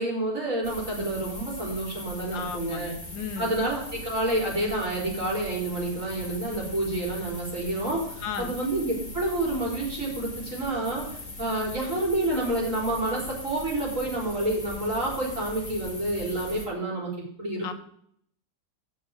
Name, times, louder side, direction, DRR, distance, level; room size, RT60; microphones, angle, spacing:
voice 1, 0.0-2.9 3.4-11.1 11.4-17.1 17.4-17.7, right 1 dB, 45° right, -4 dB, 4.6 m, -29 dB
sound 1, 0.6-16.7, left 2 dB, 25° left, 2.8 m, -40 dB
voice 2, 2.3-3.6 8.2-8.6 17.6-17.7, left 6 dB, 90° left, 8 dB, 1.7 m, -35 dB
9.6 x 6.8 x 6.4 m, 0.66 s
omnidirectional pair, 2.0 m